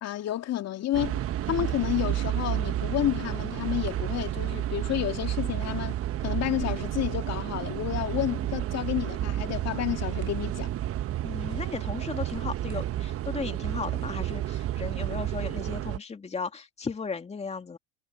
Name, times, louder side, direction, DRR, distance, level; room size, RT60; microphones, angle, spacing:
voice 1, 0.0-6.0 6.2-10.7, left 13 dB, 40° left, 2.6 m, -30 dB
sound 1, 0.9-16.0, right 12 dB, 35° right, 1.3 m, -31 dB
voice 2, 11.2-17.8, left 5 dB, 15° left, 2.5 m, -35 dB
hypercardioid pair, 95°, 38 cm